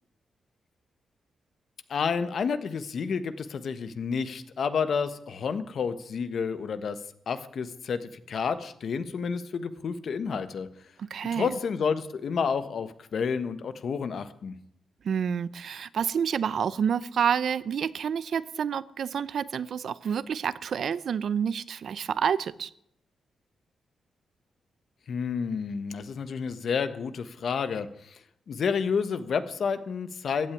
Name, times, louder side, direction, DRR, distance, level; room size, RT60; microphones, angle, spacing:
voice 1, 1.9-7.0 7.3-10.7 11.3-14.6 25.1-28.2 28.5-30.5, left 6 dB, 65° left, 1.2 m, -30 dB
voice 2, 11.0-11.5 15.0-22.7, right 7 dB, 65° right, 0.6 m, -28 dB
15.5 x 9.2 x 9.9 m
wide cardioid pair, 120°, 0 cm